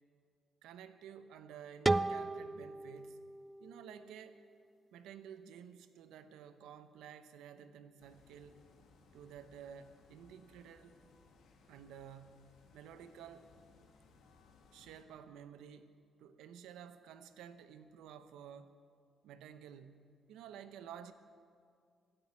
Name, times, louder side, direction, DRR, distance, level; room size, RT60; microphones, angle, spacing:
voice 1, 0.6-3.3 3.6-4.4 4.9-8.6 9.1-11.0 11.6-13.5 14.7-18.7 19.2-21.1, right 8 dB, 90° right, 11 dB, 0.9 m, -52 dB
sound 1, 1.9-4.7, right 2 dB, 20° right, 0.4 m, -36 dB
sound 2, 8.0-15.0, left 4 dB, 75° left, 2.1 m, -65 dB
16.5 x 10.0 x 8.4 m, 2.3 s
cardioid pair, 90°, 0 cm